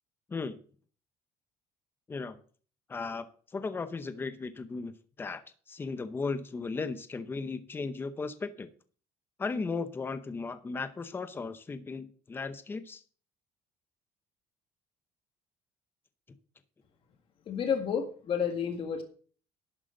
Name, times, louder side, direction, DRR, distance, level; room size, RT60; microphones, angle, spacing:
voice 1, 2.9-3.2 3.5-4.9 5.2-5.4 5.7-8.7 9.4-13.0, left 4 dB, 15° left, 11 dB, 0.7 m, -36 dB
voice 2, 17.5-19.0, left 7 dB, 40° left, 5 dB, 1.9 m, -30 dB
11.5 x 8.2 x 3.9 m, 0.43 s
cardioid pair, 155°, 14 cm